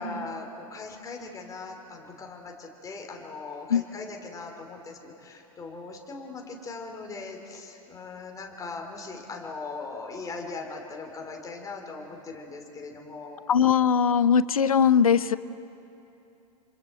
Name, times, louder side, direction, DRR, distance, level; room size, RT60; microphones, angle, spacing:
voice 1, 0.0-13.5, left 3 dB, 20° left, 1 dB, 3.0 m, -40 dB
voice 2, 13.5-15.4, left 7 dB, 75° left, 18 dB, 0.6 m, -20 dB
27.0 x 26.0 x 4.4 m, 2.8 s
figure-of-eight pair, 90°, 18 cm